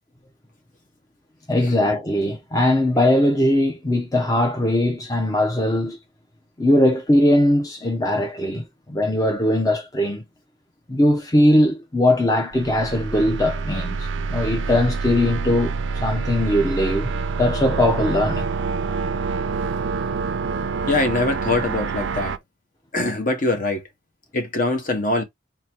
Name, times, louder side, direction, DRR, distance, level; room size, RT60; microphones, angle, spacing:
voice 1, 1.5-6.0 6.6-10.2 10.9-17.1 17.4-18.5, left 1 dB, 20° left, 0.6 m, -20 dB
sound 1, 12.5-22.4, right 4 dB, 85° right, 0.4 m, -27 dB
voice 2, 20.9-22.3 22.9-23.8 24.3-25.2, left 2 dB, 45° left, 1.0 m, -23 dB
3.9 x 2.1 x 4.4 m
head